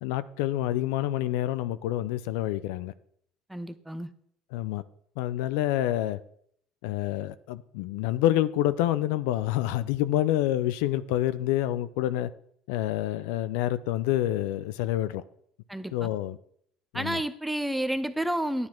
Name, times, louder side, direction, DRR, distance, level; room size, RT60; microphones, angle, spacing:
voice 1, 0.0-2.9 4.5-4.8 5.2-6.2 6.8-12.3 12.7-15.2 15.9-16.4 16.9-17.2, left 13 dB, 80° left, 0.5 m, -27 dB
voice 2, 3.5-4.1 15.7-16.1 16.9-18.7, right 1 dB, 5° right, 0.7 m, -30 dB
9.6 x 9.6 x 4.5 m
supercardioid pair, 95°, 0 cm